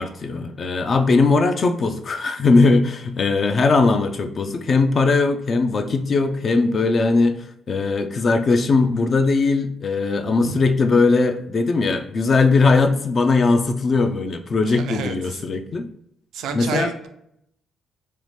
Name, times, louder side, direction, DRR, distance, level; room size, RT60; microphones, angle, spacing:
voice 1, 0.0-15.9 16.5-16.9, left 3 dB, 45° left, 8 dB, 0.3 m, -19 dB
voice 2, 10.2-10.6 14.7-15.4 16.3-17.1, right 6 dB, 85° right, 6 dB, 0.3 m, -30 dB
2.9 x 2.1 x 3.2 m, 0.74 s
cardioid pair, 90°, 0 cm